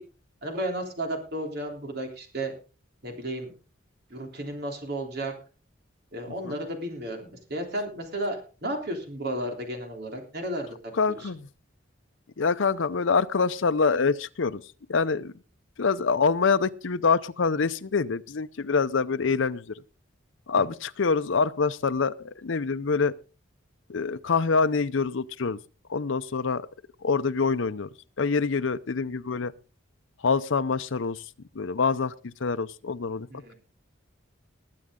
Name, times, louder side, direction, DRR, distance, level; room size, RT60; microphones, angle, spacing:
voice 1, 0.4-2.5 3.0-3.5 4.1-5.3 6.1-10.8 11.1-11.3 33.3-33.5, right 1 dB, 55° right, 3.4 m, -33 dB
voice 2, 11.0-11.5 12.4-14.6 14.9-15.3 15.8-19.8 20.5-23.1 23.9-25.6 25.9-26.6 27.0-27.9 28.2-29.5 30.2-31.2 31.6-33.3, left 5 dB, 75° left, 0.6 m, -25 dB
20.5 x 8.5 x 3.7 m
head